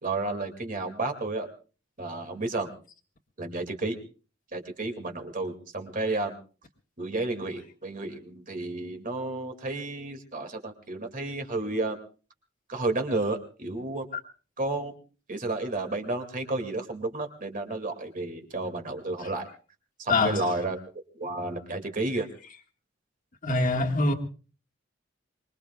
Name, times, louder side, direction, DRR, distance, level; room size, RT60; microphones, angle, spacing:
voice 1, 0.0-1.5 2.0-2.7 3.4-4.0 4.5-6.4 7.0-12.0 12.7-14.1 14.6-14.9 15.3-19.5 20.0-20.8 21.1-22.3, right 2 dB, 45° right, 2.4 m, -31 dB
voice 2, 20.1-20.5 23.4-24.1, left 2 dB, 45° left, 1.8 m, -24 dB
25.0 x 22.0 x 2.4 m
head